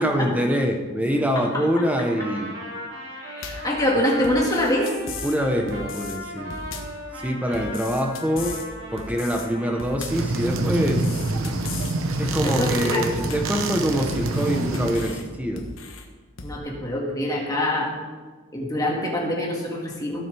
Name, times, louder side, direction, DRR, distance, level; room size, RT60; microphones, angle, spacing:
voice 1, 0.0-2.5 5.2-6.6 7.1-8.6 8.9-11.1 12.2-15.6, equal, 5° right, 3 dB, 0.9 m, -24 dB
Trumpet, 1.8-10.0, equal, 65° right, 2.2 m, -38 dB
voice 2, 3.1-4.9 12.4-13.1 16.4-17.9 18.5-20.3, left 1 dB, 15° left, -3 dB, 2.0 m, -25 dB
sound 1, 3.4-3.7 4.2-5.4 5.7-6.2 6.5-7.0 7.5-8.7 9.0-9.5 9.8-10.3 10.8-12.0 12.3-12.8 13.1-13.6 14.1-15.2 15.6-16.0 16.4-16.6, left 4 dB, 70° left, 1.2 m, -37 dB
sound 2, 10.1-15.2, right 2 dB, 80° right, 1.0 m, -26 dB
17.0 x 7.1 x 3.5 m, 1.4 s
head